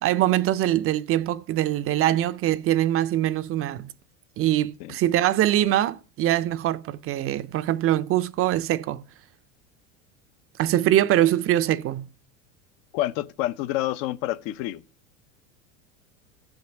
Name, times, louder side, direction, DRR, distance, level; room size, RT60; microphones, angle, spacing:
voice 1, 0.0-3.9 4.4-9.0 10.6-12.1, right 13 dB, 35° right, 0.5 m, -23 dB
voice 2, 12.9-14.8, left 15 dB, 60° left, 0.7 m, -28 dB
15.0 x 5.3 x 4.5 m
supercardioid pair, 100°, 38 cm